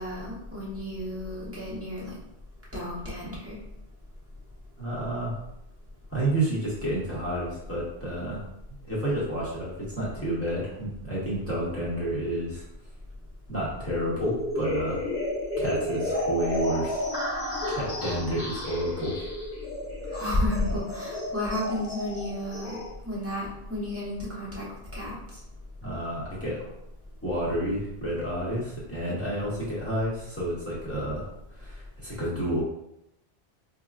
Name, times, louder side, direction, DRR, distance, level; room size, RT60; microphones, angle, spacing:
voice 1, 0.0-2.1 2.7-3.6 20.1-22.8 23.0-24.6 24.9-25.2, left 1 dB, 15° right, -8 dB, 1.1 m, -31 dB
voice 2, 4.8-5.4 6.1-12.6 13.5-15.0 15.6-17.0 17.7-19.3 25.8-26.6 27.2-31.2 31.5-32.6, right 1 dB, 15° left, -8 dB, 1.0 m, -30 dB
sound 1, 14.2-22.9, left 1 dB, 35° left, 1.1 m, -32 dB
4.5 x 2.5 x 2.4 m, 0.84 s
omnidirectional pair, 1.1 m